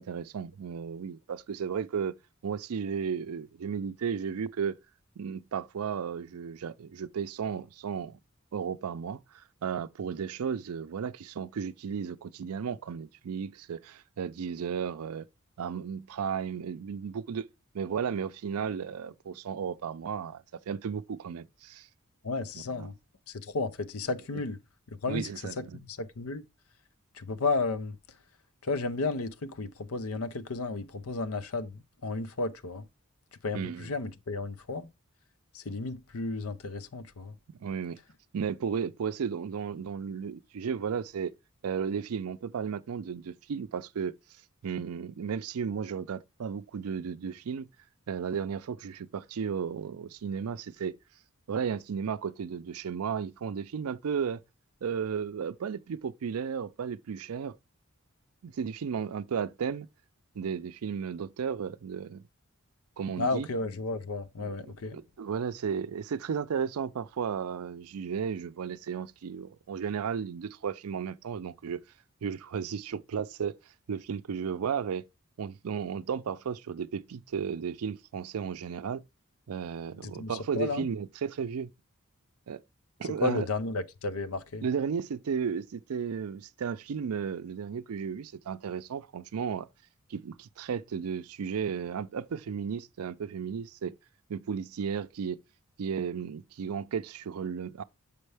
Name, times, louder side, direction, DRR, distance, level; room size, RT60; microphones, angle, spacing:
voice 1, 0.0-2.2 2.4-4.8 5.2-8.2 8.5-15.3 15.6-17.5 17.7-21.9 22.5-22.9 25.1-25.8 33.5-33.9 37.6-38.0 38.3-41.3 41.6-44.1 44.6-47.7 48.1-50.9 51.5-54.4 54.8-57.5 58.4-59.9 60.4-62.2 63.0-63.5 64.4-71.8 72.2-73.6 73.9-75.0 75.4-79.0 79.5-81.7 82.5-82.6 83.0-83.5 84.6-89.7 90.1-93.9 94.3-95.4 95.8-97.8, right 6 dB, 90° right, 0.4 m, -34 dB
voice 2, 22.2-22.9 23.3-24.6 25.0-25.3 25.6-26.4 27.2-28.0 28.6-31.7 32.0-32.9 33.4-34.9 35.5-37.3 63.2-65.0 80.0-80.8 83.2-84.6, left 3 dB, 80° left, 0.7 m, -33 dB
6.8 x 5.4 x 3.3 m
head